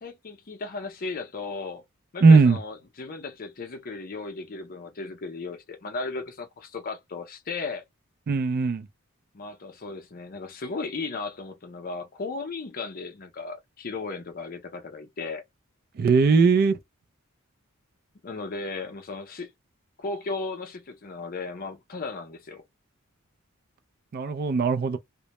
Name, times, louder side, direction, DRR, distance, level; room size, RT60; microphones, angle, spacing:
voice 1, 0.0-1.8 2.1-7.8 9.3-15.4 18.2-19.5 20.0-22.6, left 3 dB, 40° left, 0.6 m, -35 dB
voice 2, 2.2-2.6 8.3-8.9 16.0-16.8 24.1-25.0, right 4 dB, 45° right, 0.3 m, -19 dB
2.1 x 2.0 x 2.8 m
head